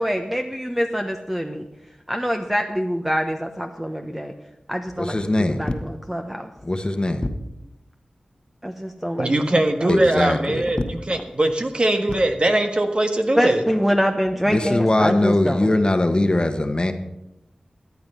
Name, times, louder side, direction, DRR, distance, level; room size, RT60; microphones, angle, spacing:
voice 1, 0.0-1.7 2.1-4.3 4.7-5.2 5.5-6.5 8.6-10.2 13.4-15.7, equal, 10° right, 4 dB, 1.0 m, -25 dB
voice 2, 5.0-5.7 6.6-7.3 9.9-10.7 14.5-16.9, left 1 dB, 35° left, 8 dB, 1.2 m, -21 dB
voice 3, 9.2-13.6, right 1 dB, 40° right, 5 dB, 1.4 m, -21 dB
14.0 x 9.7 x 5.6 m, 0.90 s
cardioid pair, 45°, 3 cm